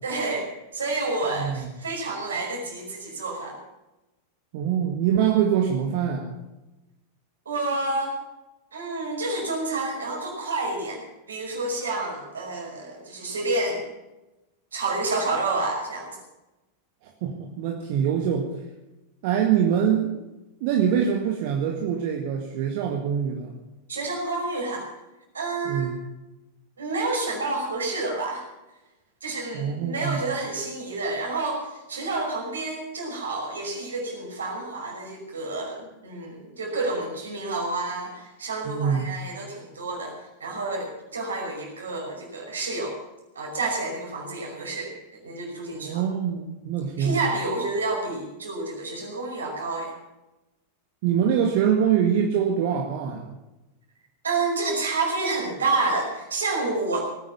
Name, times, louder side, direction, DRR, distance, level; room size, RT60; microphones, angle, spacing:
voice 1, 0.0-3.6 7.5-8.1 8.7-11.0 11.3-13.9 14.7-16.2 23.9-24.9 25.3-25.9 26.8-28.5 29.2-40.1 40.4-43.0 43.3-46.0 47.0-49.9 54.2-57.0, right 3 dB, 70° right, 0 dB, 5.6 m, -29 dB
voice 2, 4.5-6.3 17.0-18.5 19.2-20.1 20.6-23.5 25.6-25.9 29.5-30.2 38.6-39.0 45.7-47.2 51.0-53.3, right 8 dB, 50° right, 2 dB, 1.7 m, -24 dB
19.0 x 9.7 x 7.1 m, 1.0 s
figure-of-eight pair, 90°, 0 cm